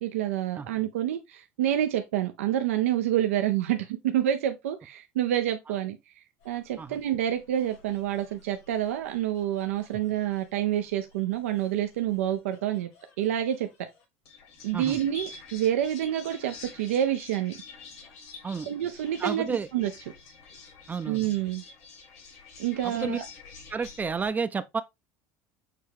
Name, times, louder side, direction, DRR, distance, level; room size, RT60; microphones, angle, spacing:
voice 1, 0.0-12.9 13.2-13.7 14.6-17.6 18.6-19.9 21.1-21.6 22.6-23.2, right 11 dB, 90° right, 0.5 m, -28 dB
sound 1, 6.4-24.3, left 4 dB, 75° left, 3.1 m, -49 dB
voice 2, 19.2-19.7 20.9-21.3 22.8-23.2 23.7-24.8, right 5 dB, 25° right, 0.4 m, -31 dB
6.5 x 2.3 x 3.4 m
supercardioid pair, 90°, 7 cm